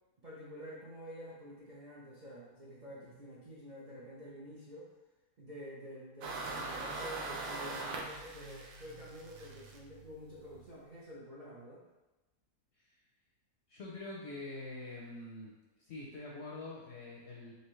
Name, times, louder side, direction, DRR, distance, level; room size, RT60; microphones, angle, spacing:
voice 1, 0.2-4.9 5.4-11.8, equal, 45° right, -7 dB, 0.6 m, -49 dB
sound 1, 6.2-10.7, right 3 dB, 75° right, 1.2 m, -42 dB
voice 2, 13.7-15.5 15.8-17.5, left 2 dB, 60° left, -4 dB, 0.7 m, -45 dB
4.2 x 3.3 x 3.1 m, 1.1 s
omnidirectional pair, 1.7 m